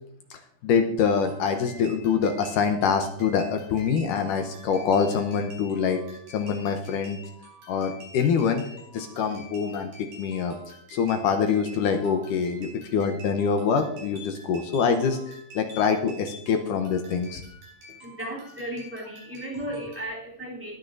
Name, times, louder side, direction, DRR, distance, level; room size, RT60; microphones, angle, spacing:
voice 1, 0.3-6.0 6.3-7.2 7.7-10.5 10.9-17.4, left 6 dB, 70° left, 6 dB, 2.1 m, -25 dB
sound 1, 1.2-20.1, equal, 60° right, 6.6 m, -48 dB
voice 2, 18.0-20.8, right 1 dB, 5° right, -5 dB, 2.6 m, -35 dB
20.5 x 9.1 x 2.7 m, 0.72 s
omnidirectional pair, 4.5 m